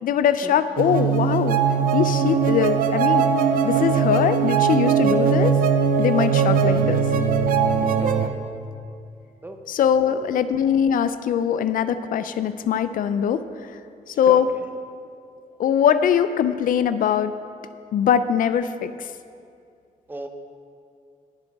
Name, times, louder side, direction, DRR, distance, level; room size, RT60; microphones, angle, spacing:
voice 1, 0.0-1.6 1.9-3.3 3.6-5.5 6.0-7.0 9.7-13.8 14.1-14.5 15.6-17.3 17.9-19.1, left 8 dB, 75° left, 12 dB, 0.5 m, -22 dB
Bit Forest Evil Theme music, 0.8-8.3, right 6 dB, 80° right, 0.7 m, -20 dB
voice 2, 8.0-8.5 9.4-9.6 10.0-10.3 14.2-14.6 20.1-20.3, right 1 dB, 15° right, 5 dB, 0.8 m, -37 dB
18.5 x 7.9 x 3.5 m, 2.4 s
wide cardioid pair, 140°, 14 cm